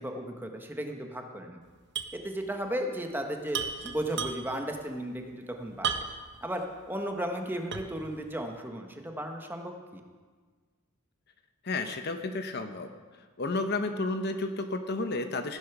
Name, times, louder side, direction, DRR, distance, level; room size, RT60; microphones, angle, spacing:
voice 1, 0.0-1.6 2.1-5.9 6.4-10.0, right 1 dB, 10° right, 3 dB, 1.2 m, -35 dB
sound 1, 1.9-2.2 2.5-2.6 3.5-4.7 5.8-6.4 6.9-7.0 7.7-8.1, right 6 dB, 55° right, 1.0 m, -33 dB
voice 2, 11.6-12.9 13.4-15.6, left 2 dB, 50° left, 8 dB, 0.9 m, -31 dB
15.5 x 10.0 x 6.0 m, 1.5 s
head